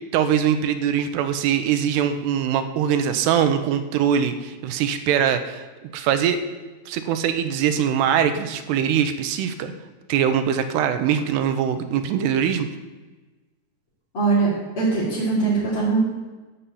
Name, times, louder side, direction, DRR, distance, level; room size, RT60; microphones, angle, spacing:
voice 1, 0.1-5.7 5.9-6.4 6.9-9.7 10.1-12.7, right 8 dB, 85° right, 9 dB, 2.9 m, -22 dB
voice 2, 14.1-16.0, right 4 dB, 35° left, -10 dB, 3.8 m, -21 dB
15.0 x 5.6 x 8.4 m, 1.2 s
omnidirectional pair, 4.9 m